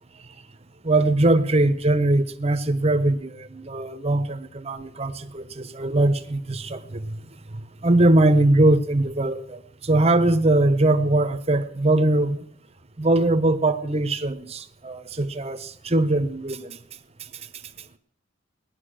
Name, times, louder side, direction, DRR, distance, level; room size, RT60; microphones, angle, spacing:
voice 1, 0.8-7.1 7.8-12.4 13.0-16.8, right 2 dB, 30° right, 1.0 m, -21 dB
18.5 x 11.0 x 6.4 m
head